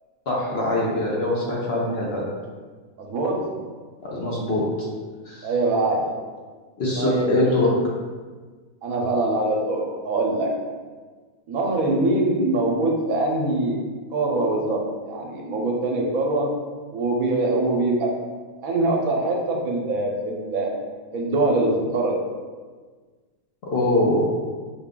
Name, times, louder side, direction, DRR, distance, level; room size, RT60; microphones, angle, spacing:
voice 1, 0.3-2.2 4.0-4.6 5.2-5.5 6.8-7.7 23.6-24.3, left 1 dB, 50° left, -4 dB, 0.9 m, -23 dB
voice 2, 3.0-3.6 5.4-6.1 7.0-7.3 8.8-10.5 11.5-13.8 14.1-16.5 16.9-18.1 18.6-20.7 21.1-22.1, right 2 dB, 75° right, -1 dB, 1.1 m, -23 dB
5.7 x 2.4 x 3.6 m, 1.5 s
omnidirectional pair, 1.5 m